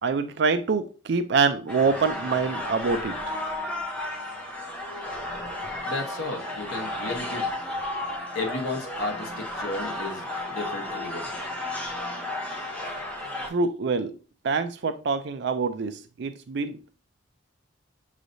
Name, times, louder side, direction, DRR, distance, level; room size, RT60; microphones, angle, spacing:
voice 1, 0.0-3.4 13.5-14.1 14.4-16.9, right 4 dB, 55° right, 9 dB, 0.4 m, -25 dB
sound 1, 1.7-13.5, left 1 dB, 5° left, 0.7 m, -33 dB
voice 2, 5.8-7.5 8.3-11.3, left 3 dB, 90° left, 3 dB, 1.1 m, -33 dB
6.4 x 3.1 x 2.6 m, 0.36 s
head